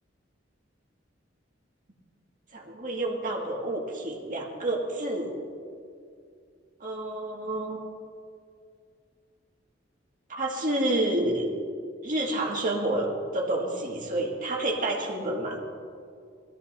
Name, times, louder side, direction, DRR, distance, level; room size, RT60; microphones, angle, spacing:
voice 1, 2.5-5.4 6.8-7.8 10.3-11.5 12.0-15.6, right 1 dB, 45° right, -1 dB, 2.0 m, -29 dB
20.0 x 13.5 x 2.7 m, 2.3 s
head